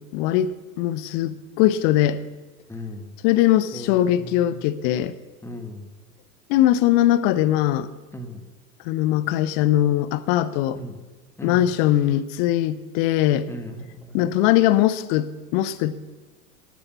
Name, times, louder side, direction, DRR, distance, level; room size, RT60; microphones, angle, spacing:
voice 1, 0.0-2.2 3.2-5.1 6.5-7.9 8.8-10.8 11.4-13.5 14.1-15.9, left 13 dB, 35° left, 15 dB, 0.8 m, -21 dB
voice 2, 2.7-3.1 3.7-4.6 5.4-5.9 8.1-8.4 10.7-10.9 11.4-11.7 13.5-14.2, left 1 dB, 5° left, 6 dB, 1.5 m, -37 dB
13.5 x 8.7 x 7.4 m, 1.2 s
figure-of-eight pair, 90°, 48 cm